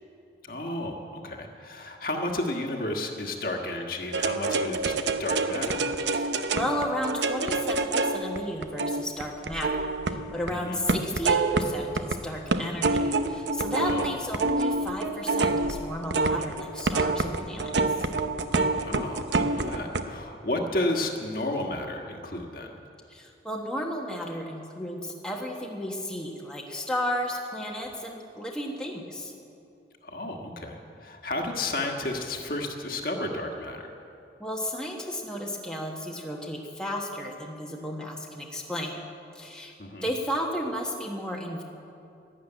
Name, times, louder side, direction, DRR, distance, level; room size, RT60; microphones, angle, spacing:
voice 1, 0.4-4.9 5.2-5.9 10.5-10.8 13.8-14.1 18.8-22.7 30.0-33.9 39.8-40.1, left 1 dB, 50° left, 2 dB, 1.5 m, -32 dB
sound 1, 4.1-10.5 10.9-12.2 12.5-20.0, right 3 dB, 80° right, 0.8 m, -27 dB
voice 2, 6.1-17.7 23.1-29.3 34.4-39.0 39.3-39.7 40.0-41.6, equal, 5° left, -1 dB, 1.2 m, -33 dB
12.0 x 12.0 x 9.0 m, 2.7 s
head